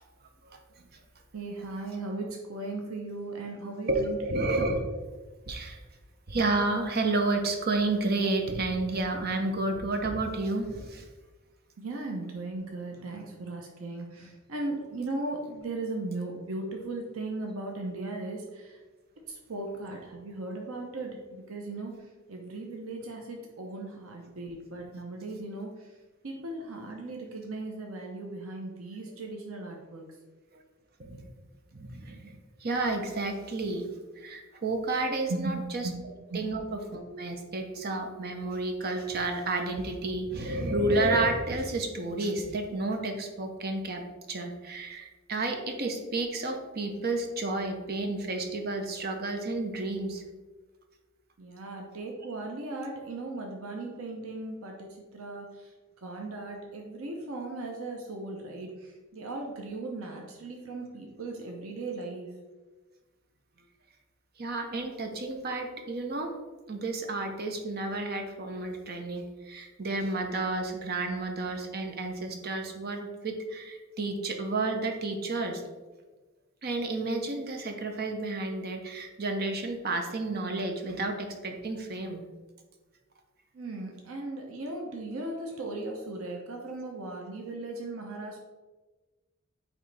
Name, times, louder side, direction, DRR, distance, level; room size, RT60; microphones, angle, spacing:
voice 1, 1.3-4.4 11.8-18.8 19.3-21.9 22.3-25.7 26.2-30.0 35.3-35.6 35.8-36.0 36.3-36.4 51.4-54.9 55.1-55.7 56.0-62.3 83.5-88.4, right 2 dB, 80° right, 1 dB, 0.8 m, -37 dB
voice 2, 3.9-4.8 5.5-5.8 6.3-11.1 30.5-30.6 31.0-31.2 31.7-33.8 34.2-35.9 36.3-44.0 44.3-50.2 64.4-66.3 66.7-75.6 76.6-82.2, right 2 dB, 50° right, 4 dB, 0.8 m, -31 dB
8.9 x 3.3 x 3.3 m, 1.3 s
head